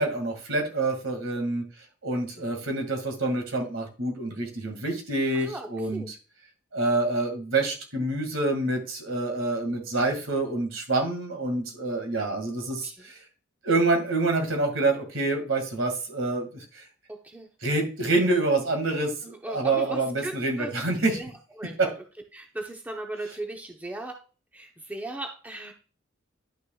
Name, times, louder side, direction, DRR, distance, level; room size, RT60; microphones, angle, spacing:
voice 1, 0.0-1.6 2.0-6.0 6.7-13.2 13.6-16.8 17.6-21.2 21.8-21.9, right 2 dB, 75° right, 4 dB, 2.1 m, -27 dB
voice 2, 5.3-6.1 12.8-13.1 17.1-17.5 19.2-20.8 21.1-21.3 21.6-21.9 22.3-24.2 24.5-25.7, right 1 dB, 10° right, 2 dB, 0.9 m, -37 dB
11.0 x 6.1 x 2.3 m, 0.34 s
head